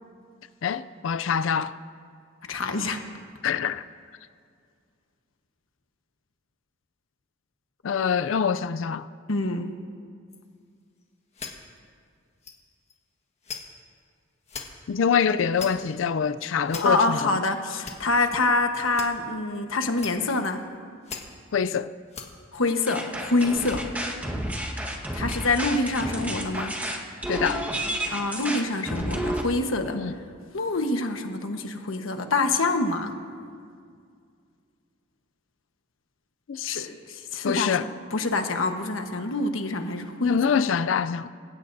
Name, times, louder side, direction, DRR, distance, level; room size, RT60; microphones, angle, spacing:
voice 1, 0.6-1.8 3.4-3.8 7.8-9.1 14.9-17.4 21.5-21.9 27.3-27.6 29.9-30.1 36.5-36.9 37.4-37.9 40.2-41.3, left 7 dB, 70° left, 0.4 m, -25 dB
voice 2, 2.5-3.0 9.3-9.7 16.7-20.6 22.5-23.9 25.1-26.7 28.1-30.0 30.5-33.1 36.7-37.7 38.1-40.6, left 2 dB, 90° left, 1.2 m, -26 dB
sound 1, 10.3-10.4 11.0-11.1 11.3-11.8 12.4-12.5 12.9-13.0 13.4-13.6 14.4-14.6 15.2-16.0 16.6-16.8 17.5-17.9 18.9-19.1 19.9-20.1 20.4-20.7 21.0-21.7 22.1-22.3 22.5-22.6, left 5 dB, 35° left, 1.5 m, -38 dB
sound 2, 22.9-29.4, right 1 dB, 10° right, 1.3 m, -31 dB
25.5 x 16.5 x 2.7 m
head